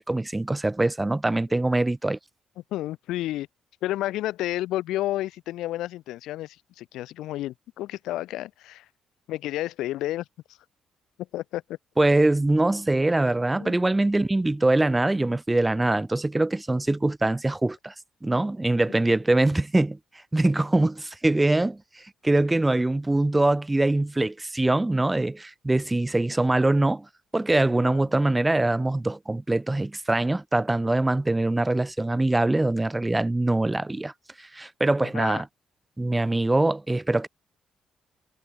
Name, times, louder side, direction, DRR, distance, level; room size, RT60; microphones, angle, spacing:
voice 1, 0.0-2.2 12.0-17.9 18.2-20.0 20.3-27.1 27.3-34.1 34.4-35.5 36.0-37.3, right 2 dB, 15° right, 0.5 m, -23 dB
voice 2, 2.7-3.5 3.8-8.8 9.3-10.2 11.3-11.8 13.6-13.8 27.8-28.0 35.1-35.4, left 15 dB, 90° left, 0.9 m, -31 dB
cardioid pair, 90°, 0 cm